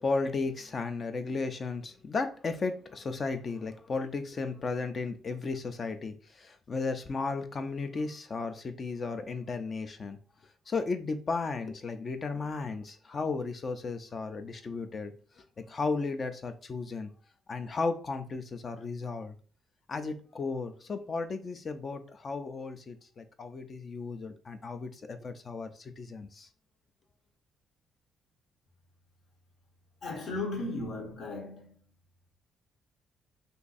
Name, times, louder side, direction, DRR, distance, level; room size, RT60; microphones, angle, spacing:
voice 1, 0.0-10.2 10.7-17.1 17.5-19.4 19.9-26.5, left 4 dB, 40° left, 0.4 m, -34 dB
voice 2, 30.0-31.8, left 2 dB, 65° left, 0.9 m, -36 dB
2.6 x 2.3 x 4.0 m
cardioid pair, 90°, 0 cm